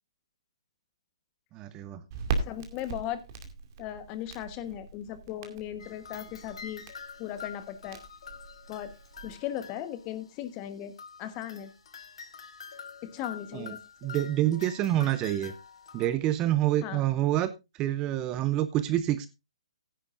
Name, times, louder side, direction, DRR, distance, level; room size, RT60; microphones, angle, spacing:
voice 1, 1.5-2.0 13.5-15.5 15.9-17.5 17.8-19.3, right 13 dB, 20° right, 13 dB, 0.6 m, -27 dB
Crackle, 2.1-9.4, right 5 dB, 40° right, 2.3 m, -39 dB
voice 2, 2.4-3.2 3.8-6.8 7.2-8.0 8.7-8.9 9.2-10.9 11.2-11.7 13.0-13.8 16.8-17.0, left 11 dB, 25° left, 12 dB, 1.3 m, -37 dB
sound 1, 5.8-10.5 11.0-16.1, left 6 dB, 65° left, 1.7 m, -46 dB
15.0 x 10.5 x 2.6 m, 0.24 s
hypercardioid pair, 150°, 3 cm